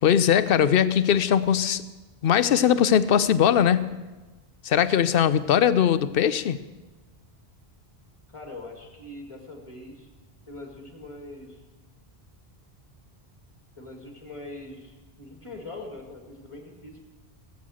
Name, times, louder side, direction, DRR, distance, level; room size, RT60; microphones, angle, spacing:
voice 1, 0.0-1.8 2.2-3.9 4.6-6.6, left 9 dB, 65° left, 14 dB, 0.8 m, -20 dB
voice 2, 8.3-10.1 10.5-11.6 13.8-17.0, left 2 dB, 30° left, 2 dB, 2.2 m, -42 dB
17.0 x 8.6 x 6.4 m, 1.2 s
omnidirectional pair, 1.1 m